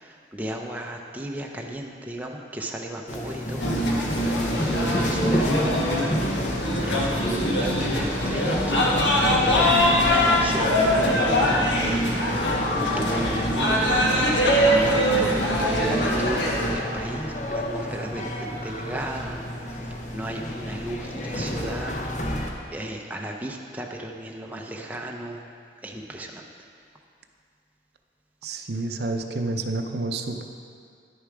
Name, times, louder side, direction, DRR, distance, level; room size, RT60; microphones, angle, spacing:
voice 1, 0.3-3.7 4.2-5.9 6.9-8.9 9.6-11.8 12.8-14.2 14.7-19.4 20.1-22.0 22.7-25.5 25.8-26.4, right 1 dB, 10° right, 0 dB, 0.5 m, -34 dB
sound 1, 3.1-22.5, left 1 dB, 40° left, 0.9 m, -31 dB
sound 2, 3.6-16.7, equal, 80° left, 1.3 m, -22 dB
voice 2, 28.4-30.4, right 2 dB, 60° right, 5 dB, 0.6 m, -29 dB
10.5 x 6.8 x 4.8 m, 2.3 s
head